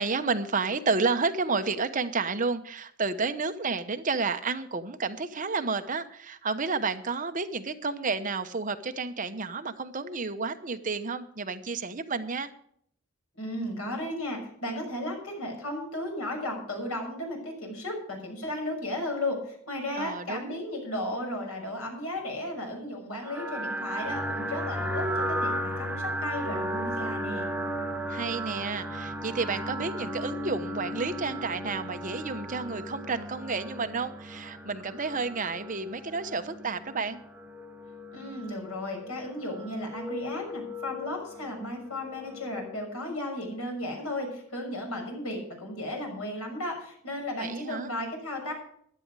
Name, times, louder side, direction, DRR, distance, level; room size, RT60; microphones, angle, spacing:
voice 1, 0.0-12.5 20.0-20.6 28.1-37.2 47.4-47.9, right 4 dB, 35° right, 9 dB, 0.9 m, -31 dB
voice 2, 13.4-27.4 38.1-48.5, left 1 dB, 80° left, 2 dB, 6.4 m, -35 dB
sound 1, 23.2-42.9, equal, 10° right, 0.9 m, -35 dB
15.5 x 11.0 x 4.7 m, 0.67 s
head